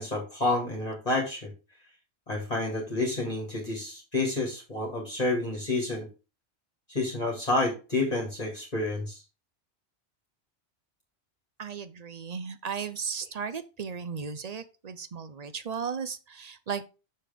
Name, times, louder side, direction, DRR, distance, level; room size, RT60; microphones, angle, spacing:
voice 1, 0.0-1.5 2.3-6.1 6.9-9.2, left 2 dB, 35° left, 2.1 m, -29 dB
voice 2, 11.6-16.8, right 6 dB, 45° right, 0.6 m, -35 dB
6.7 x 6.3 x 3.4 m
omnidirectional pair, 1.2 m